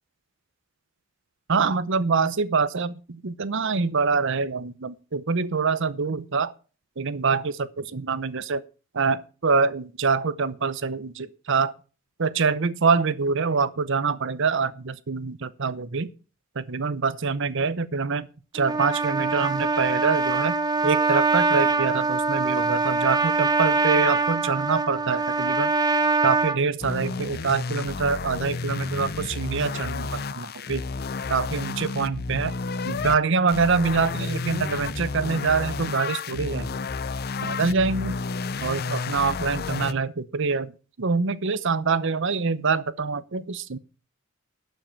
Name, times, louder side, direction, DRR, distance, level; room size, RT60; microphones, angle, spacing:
voice 1, 1.5-6.5 7.0-7.5 7.9-8.6 8.9-11.7 12.2-16.1 16.6-18.3 18.5-20.5 20.8-25.7 26.2-30.8 31.3-32.5 32.9-36.7 37.4-38.2 38.6-40.7 41.0-43.8, right 4 dB, 65° right, 0.8 m, -25 dB
Trumpet, 18.6-26.6, right 3 dB, 20° right, 0.9 m, -23 dB
sound 1, 26.8-33.2 33.5-39.9, left 4 dB, 50° left, 0.6 m, -31 dB
12.0 x 5.7 x 7.1 m
head